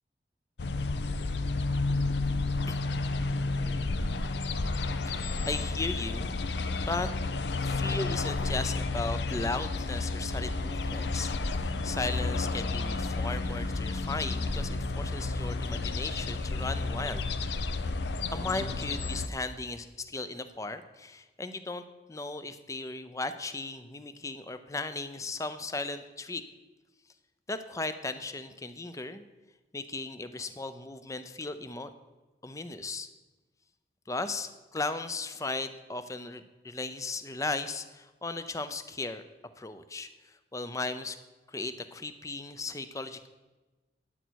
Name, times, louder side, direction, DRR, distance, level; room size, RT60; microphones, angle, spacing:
sound 1, 0.6-19.3, left 3 dB, 75° left, 0.6 m, -31 dB
voice 1, 5.1-7.1 7.6-17.2 18.3-26.5 27.5-29.2 29.7-31.9 32.4-33.1 34.1-39.2 39.6-41.2 41.5-43.3, left 3 dB, 20° left, 11 dB, 0.5 m, -36 dB
12.5 x 9.1 x 4.6 m, 1.2 s
head